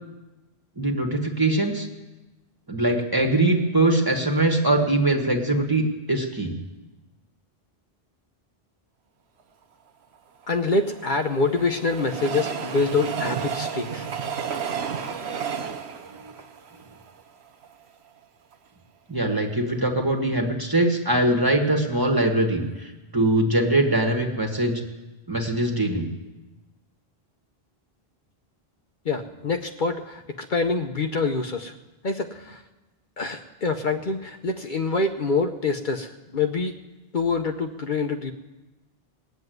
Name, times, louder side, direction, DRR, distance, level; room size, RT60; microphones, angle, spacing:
voice 1, 0.8-1.9 2.7-6.5 16.2-16.3 19.1-24.8 25.3-26.1, right 1 dB, 20° right, 2 dB, 1.7 m, -22 dB
Train, 10.4-17.7 18.2-18.3 18.5-18.6, right 7 dB, 85° right, 1.1 m, -32 dB
voice 2, 10.5-14.1 29.1-31.7 32.0-32.6 33.2-36.7 37.1-38.3, left 3 dB, 55° left, 5 dB, 0.9 m, -26 dB
19.5 x 7.9 x 9.3 m, 1.1 s
omnidirectional pair, 1.0 m